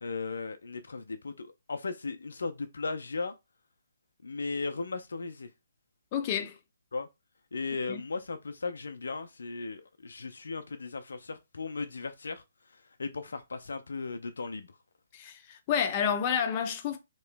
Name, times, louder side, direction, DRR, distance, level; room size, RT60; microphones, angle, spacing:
voice 1, 0.0-3.3 4.2-5.5 6.9-7.1 7.5-12.4 12.7-14.7, left 4 dB, 75° left, 0.5 m, -36 dB
voice 2, 6.1-6.6 7.9-8.0 15.1-17.0, left 8 dB, 30° left, 0.6 m, -30 dB
3.0 x 2.9 x 3.3 m
hypercardioid pair, 145°, 0 cm